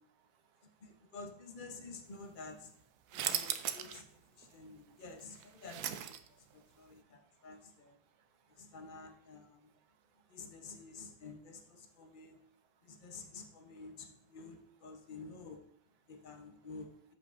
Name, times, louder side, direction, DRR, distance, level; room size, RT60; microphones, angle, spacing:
voice 1, 0.2-1.1 3.0-5.0 6.2-8.8 9.6-11.2 11.9-13.4 16.2-16.3 16.6-16.7, right 7 dB, 65° right, 8 dB, 1.2 m, -74 dB
voice 2, 0.8-2.7 3.1-4.1 4.3-8.0 8.6-9.7 10.3-12.4 12.8-15.6 16.1-16.9, left 3 dB, 60° left, 3 dB, 0.5 m, -50 dB
sound 1, 3.1-4.0 4.4-4.5 5.2-6.5, right 10 dB, 85° right, 0.8 m, -37 dB
13.0 x 5.4 x 2.6 m, 0.68 s
omnidirectional pair, 2.3 m